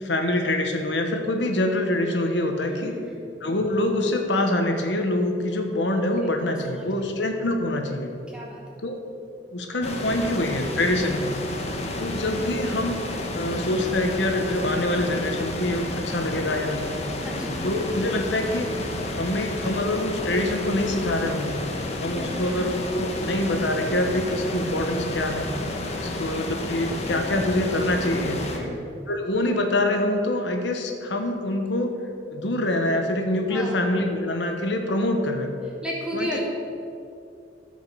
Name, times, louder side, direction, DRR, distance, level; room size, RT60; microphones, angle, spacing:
voice 1, 0.0-3.0 3.4-8.1 8.8-9.0 9.5-11.3 12.0-13.0 13.3-16.9 17.6-18.7 19.1-21.6 22.0-25.5 26.0-28.4 29.1-32.0 32.3-35.5 36.1-36.4, left 1 dB, 75° left, 4 dB, 1.1 m, -25 dB
voice 2, 2.7-3.2 6.2-6.4 6.7-6.9 8.3-8.8 17.2-17.6 22.1-22.7 28.5-28.8 33.5-33.8 35.8-36.4, equal, 5° right, -4 dB, 2.0 m, -35 dB
sound 1, 9.8-28.6, left 1 dB, 35° left, 1.1 m, -31 dB
13.5 x 5.3 x 6.8 m, 2.5 s
head